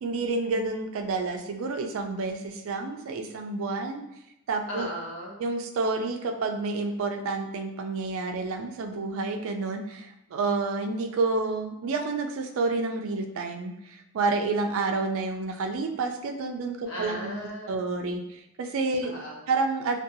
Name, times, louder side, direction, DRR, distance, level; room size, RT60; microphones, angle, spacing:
voice 1, 0.0-4.0 4.5-4.9 5.4-17.3 17.7-19.1 19.5-20.0, right 3 dB, 70° right, 4 dB, 0.3 m, -29 dB
voice 2, 4.7-5.4 16.8-17.8 19.0-19.4, equal, 65° left, -4 dB, 0.9 m, -36 dB
2.5 x 2.2 x 2.6 m, 0.86 s
head